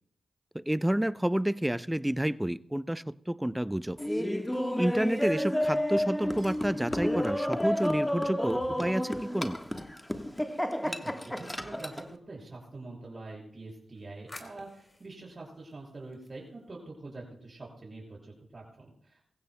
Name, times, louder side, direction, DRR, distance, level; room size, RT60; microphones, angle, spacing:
voice 1, 0.5-4.0 4.8-9.5, right 1 dB, 10° right, 17 dB, 0.5 m, -29 dB
sound 1, 3.8-9.2, left 1 dB, 85° left, 6.7 m, -54 dB
Laughter, 4.0-12.1, equal, 10° left, 1.3 m, -31 dB
voice 2, 10.8-19.2, right 2 dB, 40° right, -2 dB, 6.1 m, -45 dB
sound 2, 13.5-16.8, left 1 dB, 25° left, 3.5 m, -55 dB
23.5 x 15.5 x 2.2 m, 0.66 s
supercardioid pair, 40°, 0 cm